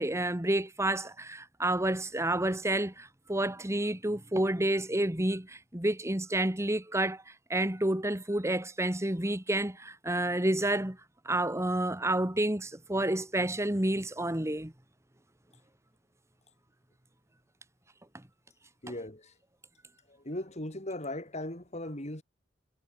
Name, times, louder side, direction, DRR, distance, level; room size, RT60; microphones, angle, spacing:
voice 1, 0.0-7.2 7.5-11.0 11.2-14.7, right 1 dB, 15° right, 1.7 m, -29 dB
voice 2, 18.8-19.3 20.1-22.2, left 1 dB, 40° left, 6.8 m, -38 dB
head